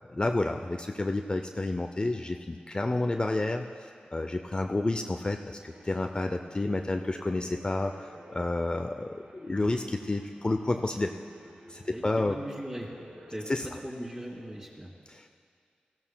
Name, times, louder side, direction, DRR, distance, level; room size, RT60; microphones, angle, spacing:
voice 1, 0.1-11.1 11.7-12.4 13.5-13.7 15.1-15.3, left 2 dB, 30° left, 4 dB, 0.5 m, -30 dB
sound 1, 5.7-13.7, right 1 dB, 90° right, 1.3 m, -53 dB
voice 2, 11.9-12.9 13.3-14.9, equal, 25° right, -4 dB, 3.1 m, -39 dB
18.0 x 15.0 x 2.2 m, 2.2 s
wide cardioid pair, 65°, 3 cm